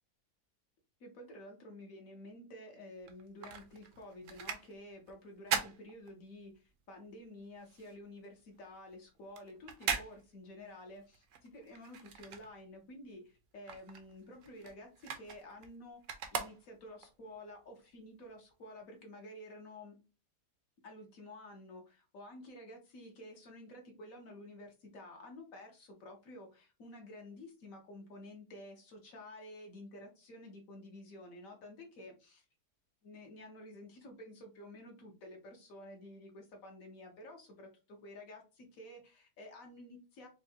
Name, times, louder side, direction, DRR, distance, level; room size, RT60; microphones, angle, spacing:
voice 1, 1.0-16.0 16.3-19.9 20.8-32.4 33.0-40.3, left 1 dB, 60° left, 2 dB, 1.2 m, -51 dB
sound 1, 3.0-6.7 7.0-13.0 13.3-17.1 17.6-17.7, right 7 dB, 65° right, 0.8 m, -41 dB
4.5 x 2.2 x 2.7 m, 0.31 s
omnidirectional pair, 1.7 m